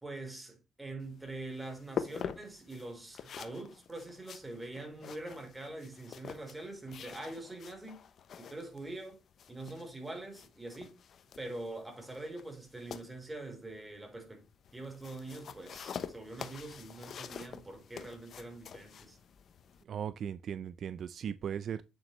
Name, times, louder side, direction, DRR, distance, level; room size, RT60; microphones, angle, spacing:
voice 1, 0.0-8.0 8.4-9.2 9.5-11.0 11.4-14.4 14.7-19.2, right 2 dB, 15° right, 3.9 m, -44 dB
sound 1, 1.0-19.8, left 7 dB, 60° left, 1.0 m, -46 dB
voice 2, 19.9-21.8, right 8 dB, 60° right, 0.5 m, -37 dB
9.3 x 7.5 x 3.2 m
cardioid pair, 90°, 0 cm